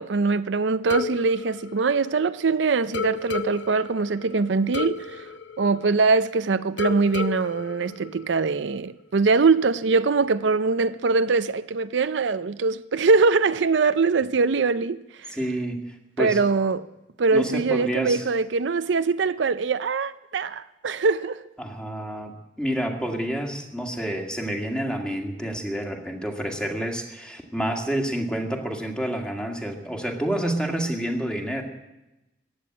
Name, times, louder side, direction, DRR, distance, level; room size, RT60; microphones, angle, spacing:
voice 1, 0.0-5.3 5.6-15.4 16.2-16.9 17.2-21.4, right 4 dB, 80° right, 0.5 m, -22 dB
sound 1, 0.9-2.5 2.9-6.3 6.8-8.7, left 4 dB, 80° left, 0.9 m, -33 dB
voice 2, 15.3-16.4 17.3-18.2 21.6-31.6, right 1 dB, 5° left, 2.0 m, -29 dB
15.5 x 10.5 x 8.7 m
head